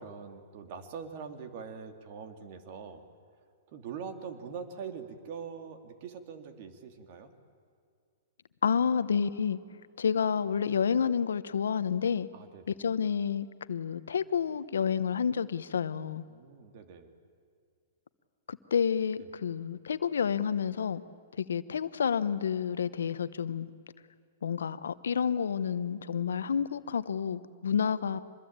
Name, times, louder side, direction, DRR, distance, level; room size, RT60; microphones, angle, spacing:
voice 1, 0.0-3.0 3.7-7.3 12.3-12.7 16.3-17.1 19.2-19.3, right 6 dB, 50° right, 7 dB, 2.7 m, -43 dB
voice 2, 8.6-9.6 10.0-12.3 12.8-16.2 18.5-21.0 21.4-23.7 24.4-28.2, left 7 dB, 90° left, 14 dB, 0.9 m, -29 dB
25.0 x 21.0 x 8.9 m, 2.2 s
hypercardioid pair, 140°, 0 cm